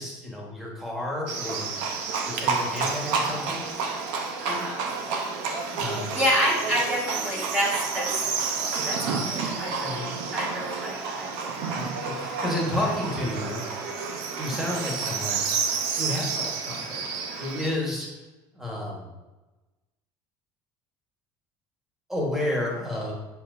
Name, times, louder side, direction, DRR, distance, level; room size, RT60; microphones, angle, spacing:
voice 1, 0.0-1.7 2.2-3.6 5.7-6.2 9.8-10.1 11.7-13.6 14.4-15.5 16.0-18.1 18.5-19.1 22.1-23.1, left 1 dB, 5° right, -3 dB, 1.4 m, -31 dB
Livestock farm animals working animals, 1.3-17.7, right 5 dB, 85° right, 0.8 m, -30 dB
voice 2, 4.4-4.8 6.1-8.1 8.8-11.8 12.4-12.6, equal, 20° right, -5 dB, 1.6 m, -28 dB
6.9 x 5.9 x 2.6 m, 1.1 s
cardioid pair, 165°, 9 cm